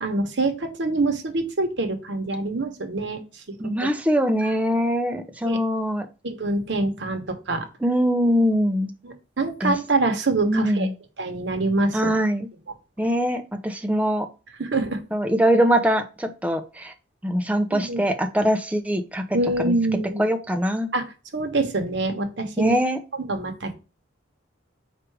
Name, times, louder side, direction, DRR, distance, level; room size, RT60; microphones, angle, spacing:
voice 1, 0.0-3.2 4.4-4.5 5.4-5.6 6.2-7.7 9.0-10.9 11.2-12.1 14.6-15.0 17.7-18.0 19.3-20.2 20.9-21.0 21.3-22.7 23.3-23.7, right 2 dB, 70° right, 5 dB, 0.9 m, -25 dB
voice 2, 3.6-6.1 7.8-8.9 9.6-9.7 10.4-10.9 11.9-12.5 13.0-14.3 15.1-16.9 17.2-19.2 20.2-20.9 22.6-23.0, equal, 5° right, 6 dB, 0.4 m, -22 dB
4.5 x 2.5 x 4.6 m, 0.32 s
head